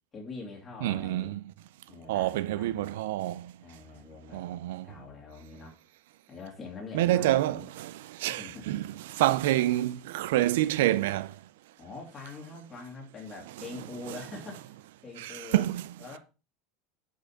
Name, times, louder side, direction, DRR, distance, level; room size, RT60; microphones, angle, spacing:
voice 1, 0.1-1.3 1.9-3.0 3.6-4.5 4.8-5.8 6.3-7.7 8.2-8.7 9.3-9.5 11.8-15.7 16.0-16.2, left 3 dB, 15° left, 2.5 m, -44 dB
voice 2, 0.8-1.3 2.1-3.5 4.3-4.9 6.9-8.8 9.1-11.4 15.2-15.8, right 15 dB, 70° right, 0.4 m, -27 dB
6.6 x 5.3 x 5.6 m
supercardioid pair, 180°, 0 cm